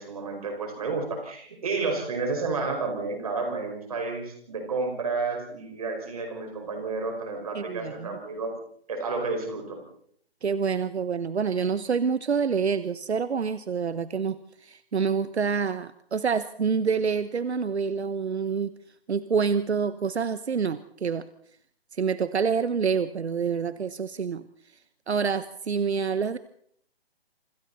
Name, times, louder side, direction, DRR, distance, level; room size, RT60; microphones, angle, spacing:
voice 1, 0.0-8.5 8.9-9.8, right 3 dB, 35° right, 3 dB, 5.4 m, -31 dB
voice 2, 7.5-8.2 10.4-18.7 19.1-21.2 21.9-24.5 25.1-26.4, right 6 dB, 80° right, 13 dB, 1.1 m, -27 dB
27.0 x 26.0 x 4.2 m, 0.66 s
hypercardioid pair, 180°, 33 cm